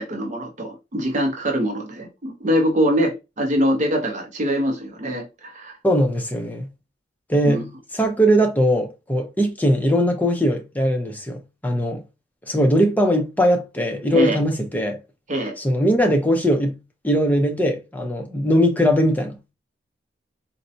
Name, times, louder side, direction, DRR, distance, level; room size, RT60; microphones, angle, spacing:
voice 1, 0.0-5.7 7.4-7.6 14.1-14.4 15.3-15.5, equal, 45° right, 0.6 m, -23 dB
voice 2, 5.8-6.7 7.3-12.0 12.5-15.0 15.6-16.8 17.0-19.5, equal, 10° left, 0.6 m, -20 dB
4.0 x 2.1 x 2.6 m
head